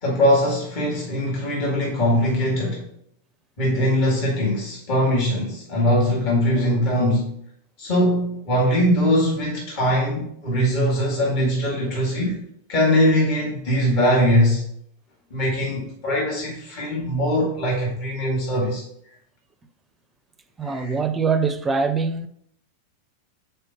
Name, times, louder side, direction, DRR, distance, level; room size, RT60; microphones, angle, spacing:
voice 1, 0.0-2.8 3.6-7.3 7.8-12.4 12.7-14.6 15.3-18.8 20.6-20.9, equal, 45° left, 2.2 m, -21 dB
voice 2, 20.6-22.3, right 5 dB, 15° right, 0.5 m, -23 dB
5.1 x 4.3 x 5.2 m
figure-of-eight pair, 90°, 0 cm